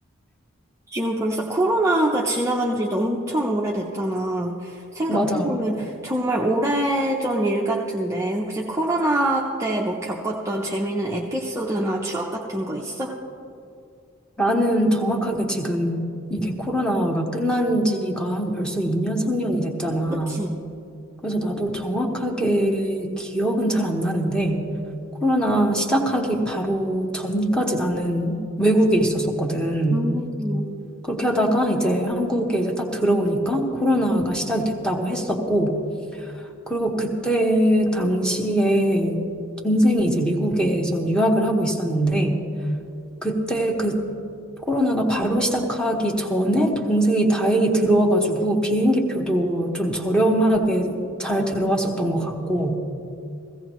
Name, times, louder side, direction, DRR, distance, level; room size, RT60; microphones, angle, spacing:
voice 1, 0.9-13.2 20.1-20.6 29.9-30.7, right 1 dB, 15° right, -2 dB, 0.6 m, -25 dB
voice 2, 5.1-5.5 14.4-20.3 21.2-24.6 25.2-30.0 31.0-35.8 36.7-39.2 39.6-42.4 43.2-44.0 44.7-52.8, right 1 dB, 5° left, 1 dB, 1.1 m, -22 dB
16.0 x 16.0 x 3.1 m, 2.5 s
head